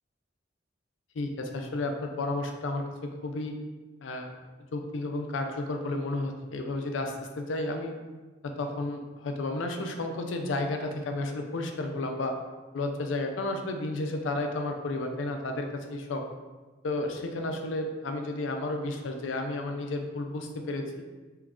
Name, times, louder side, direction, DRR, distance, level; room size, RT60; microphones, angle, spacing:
voice 1, 1.2-3.6 4.0-4.4 4.7-7.9 8.4-12.4 12.7-16.2 16.8-20.9, left 2 dB, 90° left, 4 dB, 0.4 m, -32 dB
3.0 x 2.4 x 3.5 m, 1.3 s
head